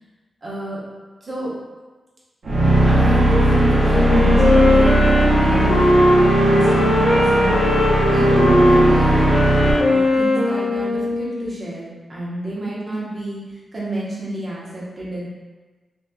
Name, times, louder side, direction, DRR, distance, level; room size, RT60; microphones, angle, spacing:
voice 1, 0.4-0.8 1.2-1.5 2.5-2.6 2.8-5.9 6.4-7.6 8.1-9.5 9.7-15.3, right 1 dB, 45° right, -6 dB, 0.9 m, -28 dB
sound 1, 2.4-9.7, right 1 dB, 80° right, 0.8 m, -17 dB
Wind instrument woodwind instrument, 3.9-11.6, left 1 dB, 75° left, 0.6 m, -18 dB
3.0 x 2.6 x 2.2 m, 1.3 s
cardioid pair, 65°, 0 cm